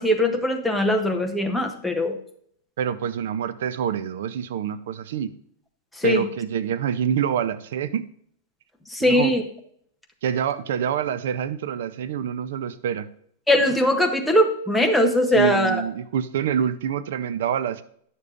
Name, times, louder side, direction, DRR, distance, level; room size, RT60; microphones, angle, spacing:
voice 1, 0.0-2.2 6.0-6.2 8.9-9.4 13.5-15.8, left 1 dB, 5° left, 2 dB, 0.7 m, -20 dB
voice 2, 2.8-5.3 6.0-8.1 9.0-9.4 10.2-13.1 15.3-17.8, right 8 dB, 65° right, 13 dB, 0.5 m, -26 dB
11.0 x 6.8 x 2.5 m, 0.65 s
supercardioid pair, 165°, 0 cm